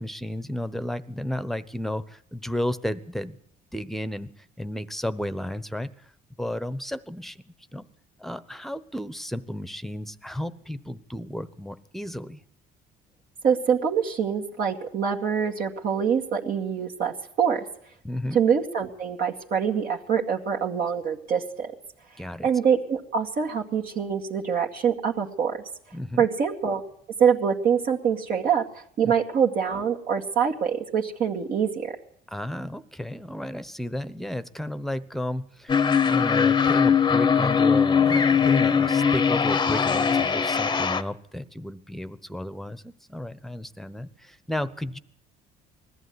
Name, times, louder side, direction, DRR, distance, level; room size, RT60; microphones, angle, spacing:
voice 1, 0.0-3.4 3.7-5.9 6.4-7.4 7.7-7.9 8.2-12.4 18.0-18.4 22.2-22.5 25.9-26.3 29.0-29.1 32.3-35.8 36.1-45.0, left 1 dB, ahead, 14 dB, 1.0 m, -33 dB
voice 2, 13.4-17.6 18.3-21.7 22.4-25.6 26.2-26.8 27.2-28.6 29.0-31.9, right 7 dB, 60° right, 0 dB, 2.3 m, -25 dB
sound 1, 35.7-41.0, left 6 dB, 25° left, 0.9 m, -21 dB
20.5 x 14.5 x 9.7 m, 0.66 s
cardioid pair, 110°, 17 cm